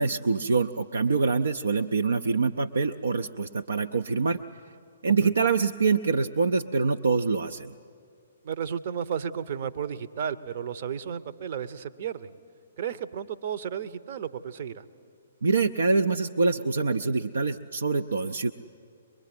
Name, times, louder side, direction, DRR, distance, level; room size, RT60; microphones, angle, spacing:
voice 1, 0.0-4.4 5.0-7.7 15.4-18.5, right 4 dB, 65° right, 9 dB, 0.5 m, -25 dB
voice 2, 5.1-5.5 8.4-12.3 12.8-14.8, right 8 dB, 45° right, 11 dB, 0.9 m, -33 dB
23.5 x 21.5 x 8.7 m, 2.3 s
figure-of-eight pair, 120°, 0 cm